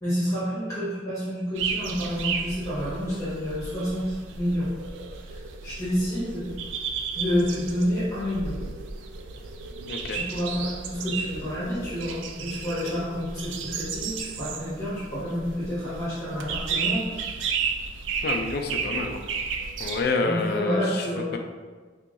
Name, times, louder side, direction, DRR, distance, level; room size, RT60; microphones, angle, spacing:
voice 1, 0.0-4.7 5.6-6.5 7.1-8.5 10.1-17.3 20.2-21.3, equal, 20° left, -11 dB, 1.3 m, -29 dB
sound 1, 1.6-20.0, right 5 dB, 85° right, 0.3 m, -33 dB
voice 2, 9.9-10.2 18.2-19.2 19.8-21.0 21.3-21.4, left 3 dB, 60° left, 4 dB, 0.4 m, -28 dB
2.8 x 2.8 x 3.7 m, 1.4 s
head